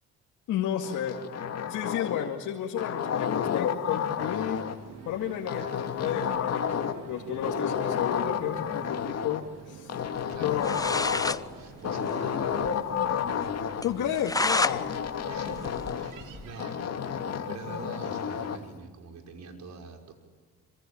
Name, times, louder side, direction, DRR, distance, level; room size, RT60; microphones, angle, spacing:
voice 1, 0.5-1.2 1.7-4.6 5.0-9.9 10.4-11.1 13.8-15.0, left 9 dB, 80° left, 0 dB, 2.4 m, -32 dB
sound 1, 0.8-2.4 2.8-4.8 5.5-7.1 7.4-9.4 9.9-11.5 11.8-13.8 14.6-16.2 16.6-18.6, left 8 dB, 55° left, 2.2 m, -31 dB
sound 2, 4.3-18.7, right 6 dB, 90° right, 3.3 m, -49 dB
sound 3, 10.4-10.5 10.6-11.4 11.8-11.9 12.1-12.2 12.6-12.7 13.1-13.2 13.8-14.8 15.2-16.5, left 2 dB, 10° left, 0.9 m, -30 dB
voice 2, 11.5-13.2 15.3-20.1, right 4 dB, 65° right, 3 dB, 6.1 m, -45 dB
26.5 x 26.0 x 8.7 m, 1.5 s
cardioid pair, 90°, 30 cm